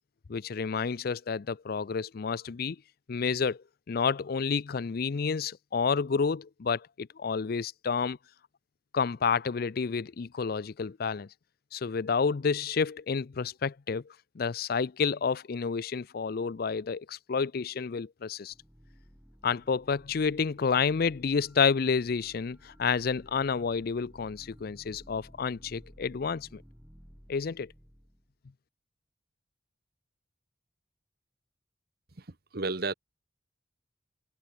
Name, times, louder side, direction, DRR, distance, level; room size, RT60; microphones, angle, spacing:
voice 1, 0.3-2.8 3.1-8.2 8.9-11.3 11.7-14.0 14.4-18.5 19.4-26.6 27.3-27.7, left 5 dB, 55° left, 0.5 m, -30 dB
sound 1, 18.5-28.3, equal, 10° right, 6.7 m, -55 dB
voice 2, 32.2-32.9, right 3 dB, 60° right, 1.3 m, -33 dB
head